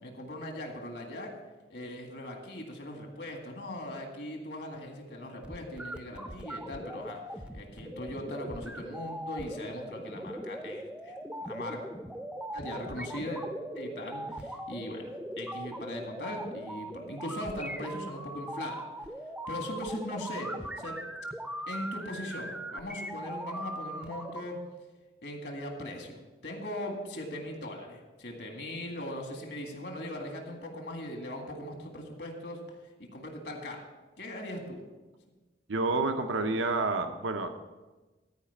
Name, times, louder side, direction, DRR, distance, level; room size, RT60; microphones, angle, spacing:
voice 1, 0.0-1.3 1.7-7.2 7.5-11.8 12.5-13.4 13.7-15.1 15.4-18.9 19.5-20.5 20.8-21.0 21.7-24.6 25.2-32.6 33.0-33.8 34.2-34.8, left 1 dB, 60° left, 2 dB, 1.9 m, -39 dB
sound 1, 5.4-24.4, right 1 dB, 5° right, 0.5 m, -40 dB
voice 2, 35.7-37.5, right 3 dB, 85° right, 6 dB, 0.7 m, -29 dB
13.5 x 4.9 x 7.1 m, 1.2 s
head